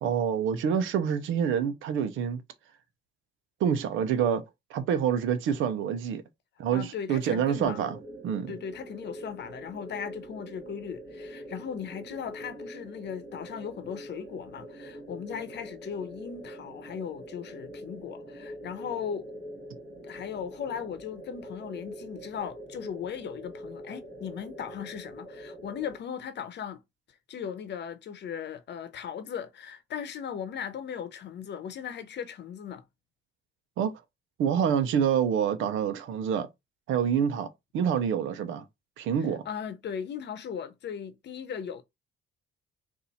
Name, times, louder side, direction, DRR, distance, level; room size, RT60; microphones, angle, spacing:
voice 1, 0.0-2.4 3.6-4.4 4.7-6.2 6.6-8.5 33.8-33.9 34.4-36.5 36.9-37.5 37.7-38.6 39.0-39.4, right 8 dB, 85° right, 0.8 m, -27 dB
voice 2, 6.7-7.9 8.5-19.3 20.0-26.8 27.3-32.8 39.4-41.8, left 8 dB, 60° left, 0.8 m, -38 dB
sound 1, 7.5-26.0, equal, 50° right, 2.2 m, -44 dB
4.1 x 2.7 x 4.2 m
cardioid pair, 90°, 20 cm